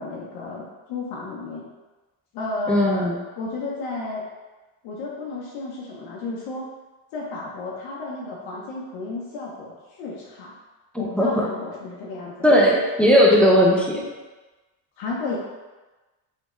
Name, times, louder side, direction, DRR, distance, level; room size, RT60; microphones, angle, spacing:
voice 1, 0.0-1.7 2.3-4.2 4.8-6.7 7.1-10.5 11.0-12.5 15.0-15.4, left 3 dB, 70° left, -4 dB, 0.7 m, -32 dB
voice 2, 2.7-3.2 10.9-11.5 12.4-14.1, equal, 5° left, -3 dB, 0.4 m, -17 dB
3.2 x 2.2 x 3.0 m, 1.2 s
hypercardioid pair, 70°, 48 cm